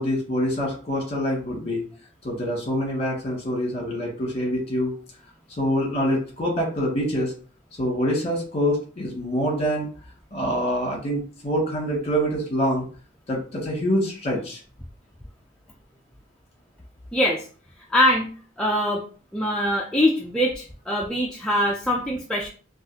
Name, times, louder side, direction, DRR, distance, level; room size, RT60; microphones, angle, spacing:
voice 1, 0.0-1.9 2.2-4.9 5.6-7.3 7.8-9.9 10.3-12.8 13.3-14.6, equal, 30° left, -2 dB, 1.5 m, -25 dB
voice 2, 17.1-17.5 17.9-18.3 18.6-19.0 19.3-22.5, left 1 dB, 5° left, -2 dB, 0.3 m, -23 dB
3.8 x 2.4 x 2.7 m, 0.40 s
head